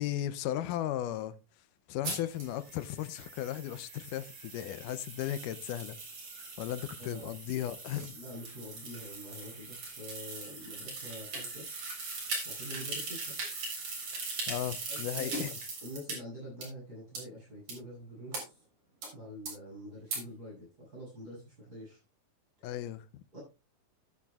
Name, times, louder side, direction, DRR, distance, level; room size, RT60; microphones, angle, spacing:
voice 1, 0.0-1.3 1.9-6.0 6.6-8.2 14.5-15.6 22.6-23.0, left 12 dB, 80° left, 2.1 m, -36 dB
sound 1, 2.0-16.2 16.6-16.7 17.2-17.3 17.7-17.8 18.3-18.4 19.0-19.1 19.5-19.6 20.1-20.2, right 3 dB, 60° right, 5.3 m, -40 dB
voice 2, 7.0-7.3 8.1-11.6 12.4-13.4 14.9-15.5 15.8-18.6 19.1-22.0 23.3-23.4, equal, 25° right, 8.1 m, -46 dB
13.0 x 10.0 x 2.3 m
omnidirectional pair, 3.8 m